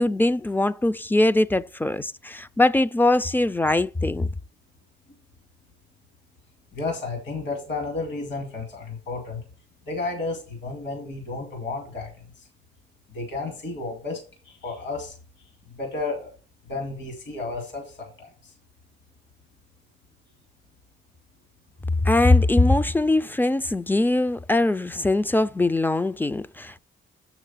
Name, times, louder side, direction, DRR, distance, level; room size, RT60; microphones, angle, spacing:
voice 1, 0.0-4.3 22.0-26.8, left 2 dB, 10° left, 0.3 m, -21 dB
voice 2, 6.7-9.4 9.9-12.5 13.1-15.2 15.7-16.3 16.7-18.5, left 3 dB, 65° left, 2.3 m, -32 dB
7.2 x 6.0 x 5.6 m
cardioid pair, 90°, 20 cm